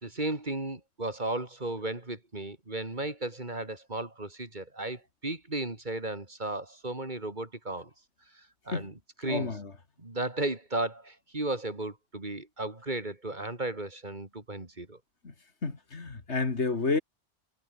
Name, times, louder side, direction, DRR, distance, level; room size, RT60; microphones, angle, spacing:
voice 1, 0.0-7.9 8.3-9.5 10.0-15.0, right 2 dB, 40° right, 3.3 m, -35 dB
voice 2, 9.3-9.7 15.2-15.3 15.6-17.0, left 4 dB, 80° left, 2.7 m, -30 dB
omnidirectional pair, 1.2 m